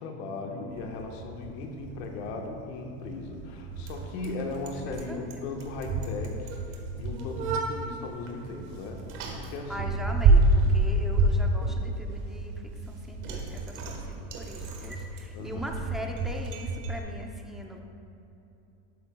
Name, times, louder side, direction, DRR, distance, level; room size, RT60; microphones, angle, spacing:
voice 1, 0.0-9.0 9.4-9.9 15.3-15.8, left 3 dB, 75° left, 2 dB, 1.4 m, -37 dB
Bicycle, 0.7-17.0, right 2 dB, 55° right, 1.5 m, -29 dB
voice 2, 4.8-5.5 9.7-17.8, equal, ahead, 1 dB, 0.7 m, -41 dB
12.5 x 8.7 x 2.3 m, 2.8 s
supercardioid pair, 135°, 34 cm